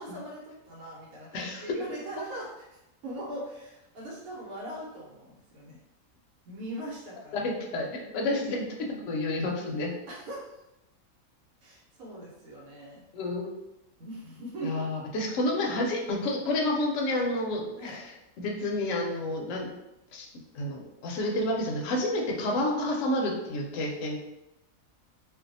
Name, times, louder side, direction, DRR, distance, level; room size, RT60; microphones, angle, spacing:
voice 1, 0.0-5.8 6.5-7.5 8.4-8.5 10.1-10.5 11.6-13.0 14.0-14.9 17.8-18.0, right 1 dB, 90° right, -5 dB, 1.2 m, -40 dB
voice 2, 1.3-1.6 7.3-8.6 9.0-9.9 13.1-13.5 14.6-19.7 20.1-20.3 20.5-24.2, left 1 dB, 70° left, 0 dB, 0.8 m, -30 dB
2.5 x 2.3 x 2.6 m, 0.92 s
omnidirectional pair, 1.5 m